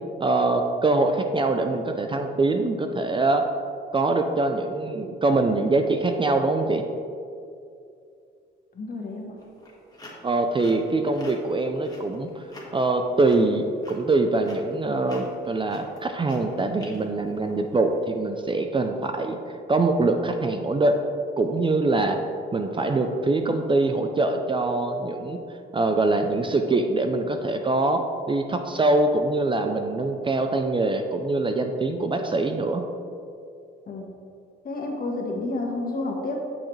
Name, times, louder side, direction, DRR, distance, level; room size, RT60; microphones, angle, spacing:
voice 1, 0.2-3.4 3.9-6.8 10.2-12.4 12.7-19.4 19.7-21.0 21.4-22.2 22.5-25.4 25.7-32.8, right 2 dB, 25° right, 5 dB, 0.5 m, -23 dB
voice 2, 8.7-9.3 33.9-34.0 34.6-36.4, left 2 dB, 45° left, 0 dB, 1.5 m, -30 dB
sound 1, 9.4-18.0, left 1 dB, 20° left, 1.8 m, -47 dB
8.7 x 6.4 x 3.3 m, 2.4 s
cardioid pair, 90°, 20 cm